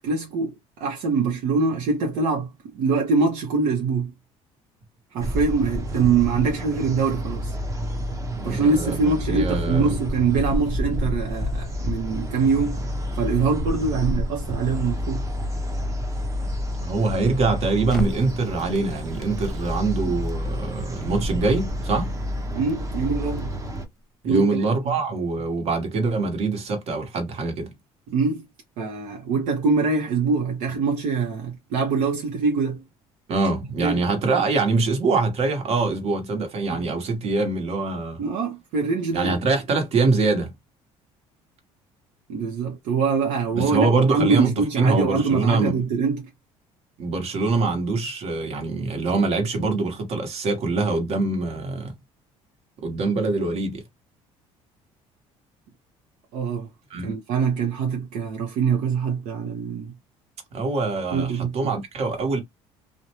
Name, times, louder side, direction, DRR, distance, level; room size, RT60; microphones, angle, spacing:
voice 1, 0.0-4.1 5.1-7.5 8.4-12.8 13.1-15.3 22.5-23.5 24.2-24.9 28.1-28.4 28.8-32.8 33.8-34.0 36.7-36.8 38.2-39.4 42.3-46.3 56.3-56.7 57.0-59.9 61.1-61.7, right 4 dB, 75° right, 0.8 m, -24 dB
sound 1, 5.2-23.8, equal, 25° right, 0.7 m, -29 dB
voice 2, 8.4-9.0 9.3-9.9 16.8-22.1 24.2-27.7 33.3-38.2 39.1-40.5 43.5-45.8 47.0-51.9 52.8-53.8 56.9-57.1 60.5-62.4, right 3 dB, 55° right, 1.2 m, -24 dB
Crackle, 17.9-24.0, left 1 dB, 5° left, 0.9 m, -38 dB
2.6 x 2.1 x 2.9 m
cardioid pair, 105°, 13 cm